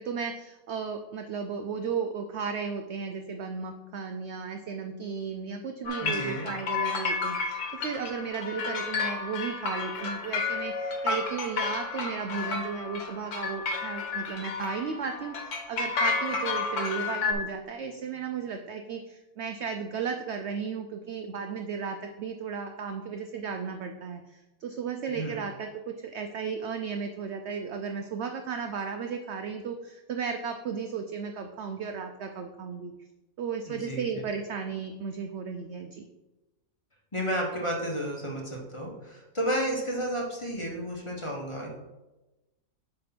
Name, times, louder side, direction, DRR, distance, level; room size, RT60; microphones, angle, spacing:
voice 1, 0.0-32.9 33.4-36.1, right 6 dB, 70° right, 5 dB, 0.6 m, -35 dB
sound 1, 5.9-17.3, left 4 dB, 75° left, 1.4 m, -31 dB
voice 2, 6.0-6.5 25.1-25.4 33.6-34.3 37.1-41.8, equal, 20° left, -1 dB, 1.1 m, -32 dB
7.6 x 3.4 x 5.9 m, 1.1 s
omnidirectional pair, 1.7 m